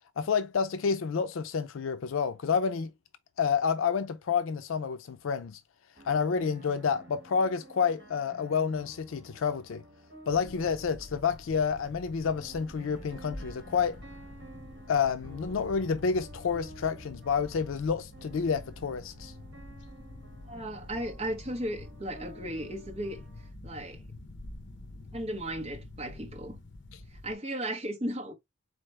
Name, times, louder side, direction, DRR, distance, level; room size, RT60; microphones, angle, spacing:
voice 1, 0.2-2.9 3.4-5.6 6.0-9.8 10.3-14.0 14.9-19.3, left 6 dB, 85° left, 0.4 m, -29 dB
sound 1, 6.0-23.5, right 2 dB, 60° right, 1.5 m, -52 dB
sound 2, 10.2-27.3, left 1 dB, 60° left, 0.9 m, -47 dB
voice 2, 20.5-23.2 23.6-24.0 25.1-26.6 27.1-28.3, right 1 dB, 30° right, 1.0 m, -35 dB
4.1 x 3.3 x 3.2 m
head